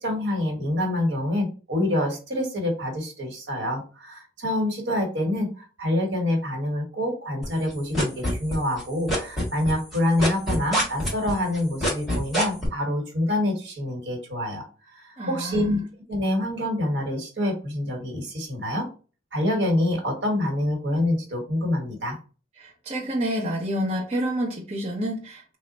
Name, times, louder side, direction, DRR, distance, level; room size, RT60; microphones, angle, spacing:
voice 1, 0.0-14.7 14.9-15.8 16.1-18.9 19.3-22.2, left 1 dB, 80° right, 1.1 m, -26 dB
sound 1, 7.4-8.8 9.1-12.7, equal, ahead, 1.4 m, -24 dB
voice 2, 15.2-15.8 22.6-25.6, equal, 35° right, 0.7 m, -28 dB
3.2 x 2.1 x 3.8 m
head